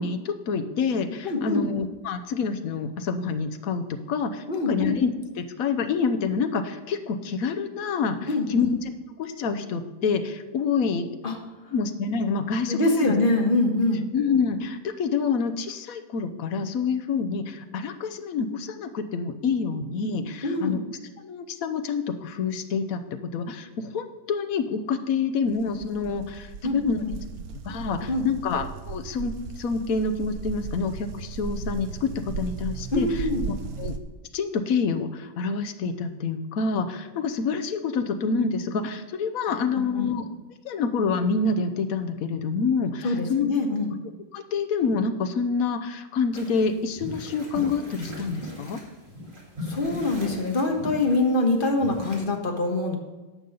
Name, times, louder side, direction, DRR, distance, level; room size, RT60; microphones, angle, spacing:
voice 1, 0.0-5.1 5.4-8.7 9.2-11.1 11.7-13.1 14.1-20.8 21.2-23.0 23.3-27.0 27.6-33.9 34.3-40.3 40.6-43.5 44.3-48.8, left 5 dB, 70° left, 9 dB, 1.2 m, -27 dB
voice 2, 1.2-1.7 4.5-5.0 8.3-8.7 11.2-11.4 12.7-14.0 20.4-20.8 26.6-26.8 27.0-27.1 28.1-28.3 32.9-33.5 39.7-40.1 43.0-43.9 49.7-53.0, left 2 dB, 35° left, 2 dB, 1.4 m, -24 dB
sound 1, 25.5-34.0, right 6 dB, 75° right, 1.2 m, -36 dB
sound 2, 46.3-52.2, equal, 35° right, 2.2 m, -38 dB
10.5 x 5.3 x 7.0 m, 1.2 s
omnidirectional pair, 1.6 m